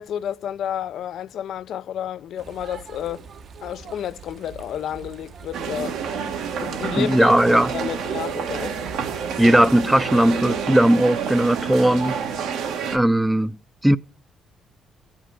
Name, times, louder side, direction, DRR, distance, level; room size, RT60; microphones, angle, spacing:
voice 1, 0.0-3.3 3.6-7.4 7.7-8.7, left 10 dB, 75° left, 0.4 m, -31 dB
sound 1, 2.4-10.7, right 6 dB, 60° right, 0.8 m, -43 dB
sound 2, 5.5-13.0, right 6 dB, 85° right, 1.4 m, -28 dB
voice 2, 7.0-7.7 9.4-12.2 12.9-13.6 13.8-14.0, right 1 dB, 5° right, 0.4 m, -17 dB
15.5 x 6.1 x 3.2 m
cardioid pair, 90°, 0 cm